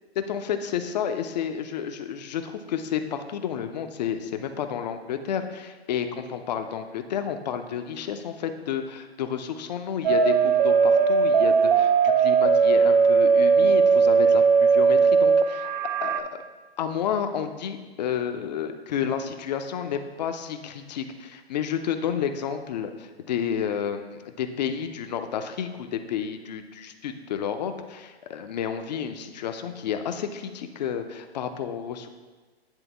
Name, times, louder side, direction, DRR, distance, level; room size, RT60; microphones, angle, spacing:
voice 1, 0.3-15.7 16.0-16.4 16.8-32.1, left 8 dB, 40° left, 7 dB, 0.6 m, -31 dB
sound 1, 10.0-16.2, right 5 dB, 50° right, 0.5 m, -19 dB
9.9 x 3.4 x 3.4 m, 1.3 s
hypercardioid pair, 130°, 32 cm